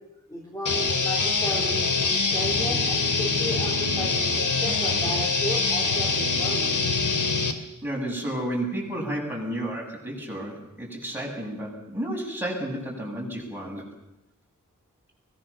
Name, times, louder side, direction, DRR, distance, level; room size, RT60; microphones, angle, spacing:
voice 1, 0.3-6.8, equal, 10° left, -4 dB, 4.2 m, -34 dB
sound 1, 0.7-7.5, left 4 dB, 75° left, 2.4 m, -24 dB
voice 2, 7.8-13.8, right 1 dB, 5° right, -2 dB, 7.6 m, -31 dB
23.5 x 20.5 x 7.1 m, 0.91 s
wide cardioid pair, 105°, 32 cm